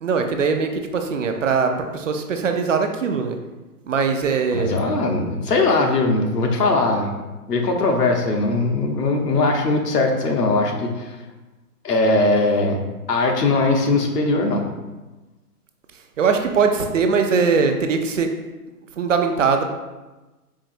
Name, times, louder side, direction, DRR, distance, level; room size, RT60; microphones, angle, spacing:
voice 1, 0.0-3.4 3.9-4.8 16.2-18.3 19.0-19.6, right 5 dB, 55° right, 5 dB, 0.5 m, -21 dB
voice 2, 4.5-7.1 7.5-11.2 11.8-12.8 13.1-14.6, left 2 dB, 80° left, 2 dB, 1.0 m, -20 dB
4.6 x 2.8 x 2.6 m, 1.1 s
hypercardioid pair, 150°, 47 cm